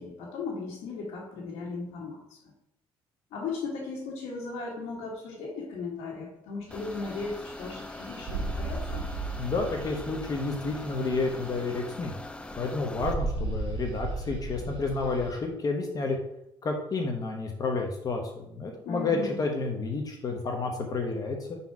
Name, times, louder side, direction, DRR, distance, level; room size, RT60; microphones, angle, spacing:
voice 1, 0.0-2.4 3.3-9.0 18.8-19.3, left 4 dB, 85° left, -6 dB, 1.5 m, -37 dB
sound 1, 6.7-13.1, left 2 dB, 10° left, 0.3 m, -42 dB
sound 2, 6.7-15.4, right 3 dB, 55° right, 1.2 m, -36 dB
voice 2, 9.4-12.1 12.6-16.2 16.6-21.6, left 3 dB, 40° left, 2 dB, 0.9 m, -30 dB
5.6 x 4.2 x 4.7 m, 0.79 s
cardioid pair, 120°, 10 cm